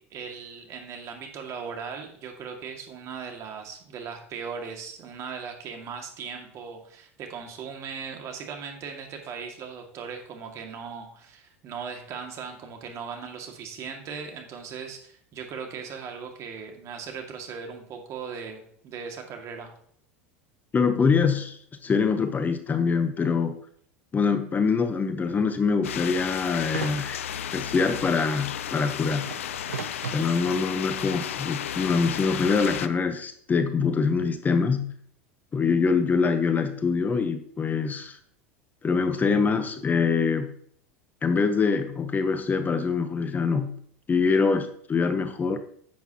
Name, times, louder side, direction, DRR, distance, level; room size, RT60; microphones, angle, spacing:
voice 1, 0.0-19.7, right 6 dB, 45° right, 4 dB, 2.1 m, -38 dB
voice 2, 20.7-23.6 24.1-27.2 27.5-29.3 30.1-34.9 35.5-38.2 38.8-40.5 41.2-43.7 44.1-45.6, left 5 dB, 25° left, 9 dB, 0.8 m, -24 dB
sound 1, 25.8-32.9, left 10 dB, 80° left, 0.5 m, -33 dB
sound 2, 26.3-27.0 27.6-27.7 29.0-30.6 31.3-31.4, right 7 dB, 90° right, 0.5 m, -38 dB
10.5 x 8.1 x 2.9 m, 0.63 s
hypercardioid pair, 85°, 7 cm